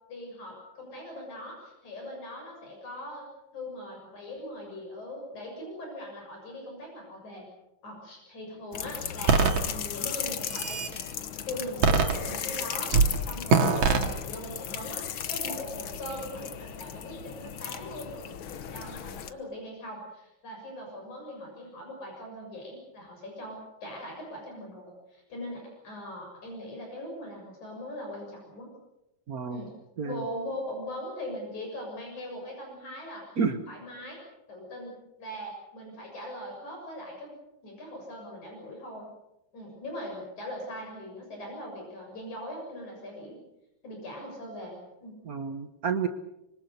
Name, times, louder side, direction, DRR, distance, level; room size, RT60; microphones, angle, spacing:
voice 1, 0.1-3.3 3.5-7.5 7.8-10.8 11.4-18.2 18.6-28.7 29.5-29.7 30.0-33.3 33.7-34.2 34.5-37.3 37.6-39.1 39.5-43.4 43.8-45.1, left 1 dB, 80° left, 1 dB, 8.3 m, -40 dB
sound 1, 8.7-19.3, left 9 dB, 55° left, 1.7 m, -36 dB
sound 2, 9.3-9.6 10.3-10.9 11.8-12.6 12.9-13.1 13.5-14.1, right 5 dB, 80° right, 3.3 m, -22 dB
voice 2, 29.3-29.7 30.0-30.2 33.4-33.6 45.2-46.1, right 6 dB, 65° right, 9 dB, 0.9 m, -30 dB
25.5 x 24.5 x 6.8 m, 0.88 s
omnidirectional pair, 3.3 m